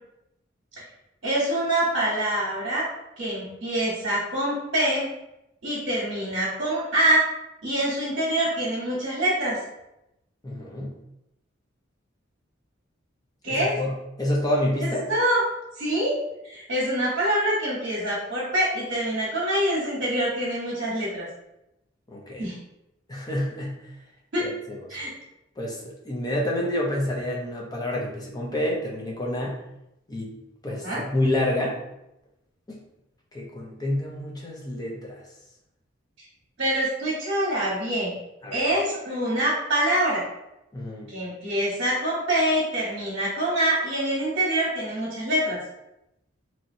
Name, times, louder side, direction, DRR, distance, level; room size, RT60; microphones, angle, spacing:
voice 1, 1.2-2.9 3.2-5.1 5.6-7.3 7.6-9.6 13.4-13.7 14.8-15.4 15.8-16.1 16.4-21.3 22.4-22.6 24.3-24.5 24.9-25.1 30.8-31.0 36.6-38.1 38.5-40.2 41.1-45.6, right 1 dB, 60° right, -7 dB, 1.0 m, -25 dB
voice 2, 10.4-10.9 13.4-13.9 14.2-15.0 22.1-22.5 23.1-23.8 24.4-24.8 25.6-29.6 30.1-30.3 30.6-31.8 32.7-32.8 33.3-35.2 38.4-38.6 40.7-41.1, left 1 dB, 20° left, -2 dB, 0.5 m, -28 dB
3.0 x 2.8 x 2.6 m, 0.88 s
head